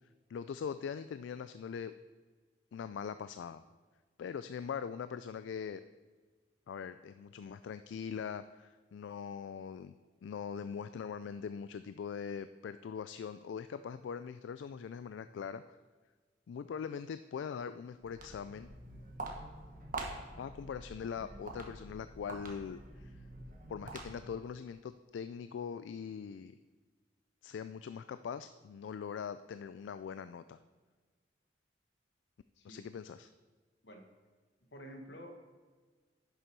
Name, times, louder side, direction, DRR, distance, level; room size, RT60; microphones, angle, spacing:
voice 1, 0.3-1.9 2.7-3.6 4.2-5.8 6.7-9.9 10.2-15.8 16.5-18.7 20.4-23.2 23.7-26.5 27.4-30.6 32.6-33.3, left 7 dB, 85° left, 12 dB, 0.3 m, -42 dB
Walk footsteps, 17.9-24.4, right 2 dB, 50° right, 1.4 m, -46 dB
voice 2, 34.7-35.4, equal, 70° left, 3 dB, 1.4 m, -49 dB
10.5 x 6.6 x 4.6 m, 1.4 s
head